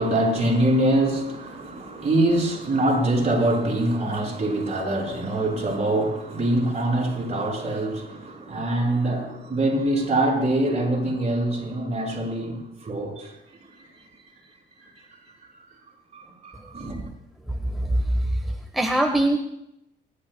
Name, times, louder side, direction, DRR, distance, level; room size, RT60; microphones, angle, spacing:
voice 1, 0.0-13.3 16.1-17.1, right 1 dB, 35° right, 5.5 m, -24 dB
voice 2, 17.5-19.4, right 1 dB, ahead, 1.0 m, -23 dB
29.0 x 12.0 x 2.2 m
cardioid pair, 90°, 20 cm